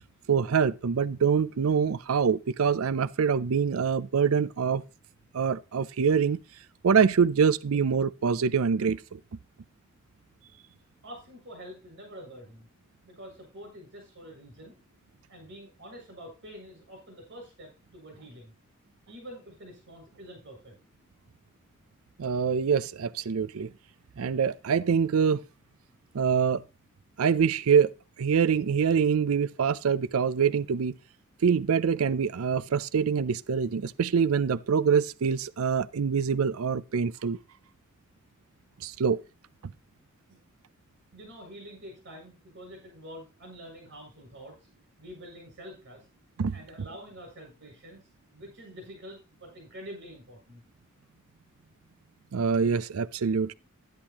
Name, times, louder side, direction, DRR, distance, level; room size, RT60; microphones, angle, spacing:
voice 1, 0.3-4.8 5.3-6.4 6.8-9.2 22.2-23.7 24.2-25.4 26.1-26.6 27.2-27.9 28.2-30.9 31.4-37.4 38.8-39.2 46.4-46.6 52.3-53.5, right 6 dB, 85° right, 0.5 m, -25 dB
voice 2, 11.0-12.7 13.1-14.8 15.3-18.5 19.1-20.8 40.3-40.4 41.1-44.7 45.0-46.1 46.5-48.0 48.3-50.6, equal, 60° right, 7.2 m, -46 dB
11.5 x 10.5 x 2.9 m
head